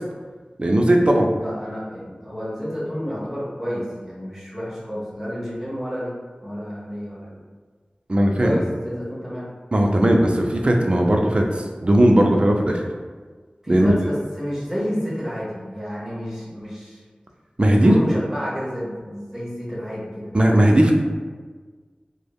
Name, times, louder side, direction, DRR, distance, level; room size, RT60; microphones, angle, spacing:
voice 1, 0.6-1.3 8.1-8.6 9.7-12.8 13.7-13.9 17.6-18.0 20.3-20.9, right 1 dB, 40° right, 1 dB, 0.3 m, -17 dB
voice 2, 1.3-6.1 6.4-7.4 8.4-9.5 13.6-17.0 17.6-20.3, equal, 15° right, -7 dB, 0.8 m, -30 dB
3.4 x 2.0 x 2.2 m, 1.5 s
wide cardioid pair, 65°, 3 cm